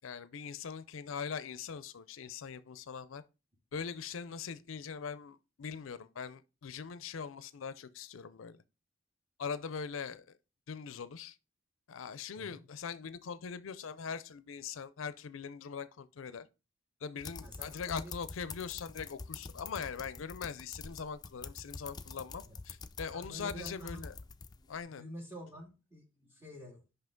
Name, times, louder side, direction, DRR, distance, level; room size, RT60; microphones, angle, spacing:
voice 1, 0.0-3.2 3.7-8.6 9.4-10.4 10.7-11.4 11.9-16.5 17.0-24.1 24.7-25.0, left 6 dB, 75° left, 0.5 m, -41 dB
sound 1, 17.2-24.8, left 4 dB, 20° left, 0.4 m, -46 dB
voice 2, 17.4-18.1 22.5-22.6 23.1-24.1 24.9-26.8, equal, 10° right, 2.2 m, -48 dB
5.7 x 5.6 x 3.8 m
head